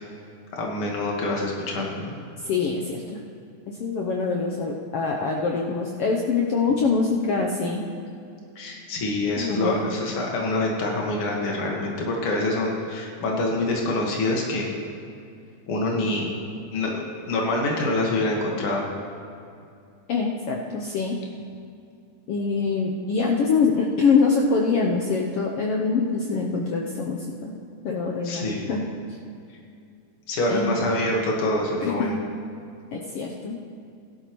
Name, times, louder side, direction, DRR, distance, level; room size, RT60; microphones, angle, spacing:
voice 1, 0.5-2.1 8.6-14.7 15.7-16.3 16.7-18.8 28.2-28.6 30.3-32.2, left 2 dB, 50° left, -1 dB, 2.2 m, -26 dB
voice 2, 2.4-3.2 3.7-7.8 9.4-9.8 16.0-16.1 20.1-21.2 22.3-27.6 27.8-28.9 30.5-30.8 31.8-32.3 32.9-33.6, left 4 dB, 75° left, -1 dB, 1.3 m, -24 dB
16.0 x 12.0 x 3.1 m, 2.4 s
omnidirectional pair, 3.5 m